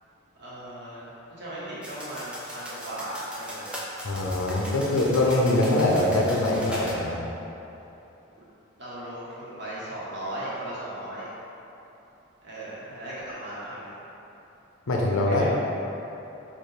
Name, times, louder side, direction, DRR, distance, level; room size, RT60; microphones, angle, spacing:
voice 1, 0.4-1.1 1.4-3.7 8.3-8.4 8.8-11.3 12.4-13.9 15.2-15.6, right 1 dB, 55° right, -9 dB, 1.1 m, -37 dB
sound 1, 1.8-7.0, equal, 5° right, 0.4 m, -39 dB
voice 2, 4.0-7.2 14.9-15.5, left 1 dB, 85° left, -2 dB, 0.6 m, -23 dB
4.4 x 2.4 x 3.3 m, 3.0 s
head